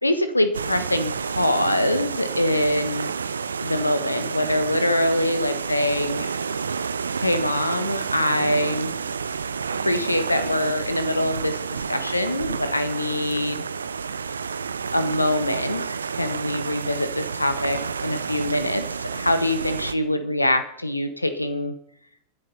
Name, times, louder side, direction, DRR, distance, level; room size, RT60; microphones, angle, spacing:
voice 1, 0.0-3.1 3.6-6.3 7.1-8.9 9.8-13.6 14.9-21.7, left 1 dB, 85° left, 10 dB, 1.4 m, -24 dB
sound 1, 0.5-20.0, right 5 dB, 70° right, 0.6 m, -30 dB
27.5 x 11.0 x 4.1 m, 0.70 s
figure-of-eight pair, 90°, 0 cm